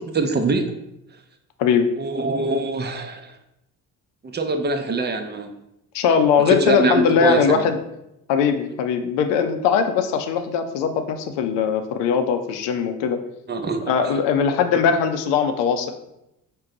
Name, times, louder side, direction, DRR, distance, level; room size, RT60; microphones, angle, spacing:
voice 1, 0.1-0.7 2.0-3.3 4.2-5.5 6.5-7.6 13.5-13.9, right 3 dB, 25° right, 6 dB, 0.6 m, -23 dB
voice 2, 5.9-7.8 8.3-13.2 13.9-15.9, left 6 dB, 70° left, 7 dB, 0.7 m, -20 dB
5.3 x 2.2 x 3.8 m, 0.85 s
hypercardioid pair, 45°, 45 cm